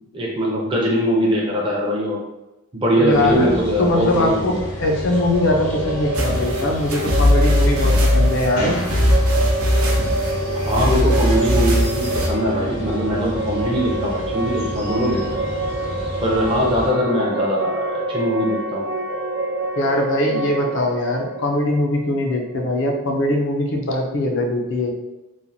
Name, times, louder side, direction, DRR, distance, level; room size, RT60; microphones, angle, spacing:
voice 1, 0.1-2.2 2.7-4.6 10.5-15.5 16.2-18.8, equal, 25° right, -3 dB, 0.5 m, -21 dB
voice 2, 3.0-8.8 19.8-24.9, left 1 dB, 55° left, 1 dB, 0.5 m, -21 dB
sound 1, 3.1-16.9, equal, 75° left, 0.9 m, -31 dB
sound 2, 4.8-22.6, right 2 dB, 60° right, 1.0 m, -27 dB
sound 3, 6.1-12.3, left 1 dB, 80° right, 0.6 m, -19 dB
3.1 x 2.1 x 2.6 m, 0.99 s
head